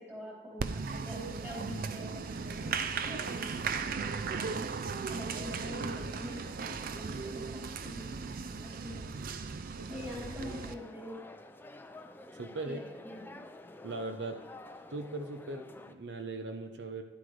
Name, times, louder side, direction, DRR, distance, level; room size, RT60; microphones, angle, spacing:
voice 1, 0.0-3.9 4.3-4.7 5.1-8.1 8.4-9.1 9.9-11.2 12.6-13.4, left 1 dB, 10° right, -5 dB, 3.2 m, -45 dB
Applause, 0.6-10.7, right 5 dB, 50° right, 0.4 m, -37 dB
sound 1, 9.9-15.9, left 2 dB, 10° left, 0.4 m, -50 dB
voice 2, 12.3-12.8 13.8-14.4 14.9-17.0, right 2 dB, 70° right, 6 dB, 0.9 m, -39 dB
11.5 x 10.5 x 3.3 m, 1.2 s
head